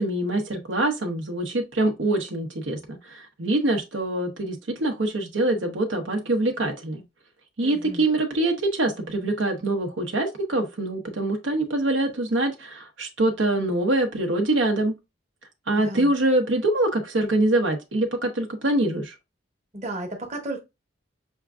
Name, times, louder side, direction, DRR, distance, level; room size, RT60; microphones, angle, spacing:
voice 1, 0.0-7.0 7.6-14.9 15.7-19.1, right 2 dB, 75° right, 0.8 m, -24 dB
voice 2, 7.6-8.1 15.7-16.1 19.7-20.6, right 1 dB, 40° right, 1.0 m, -34 dB
6.2 x 2.4 x 2.3 m
head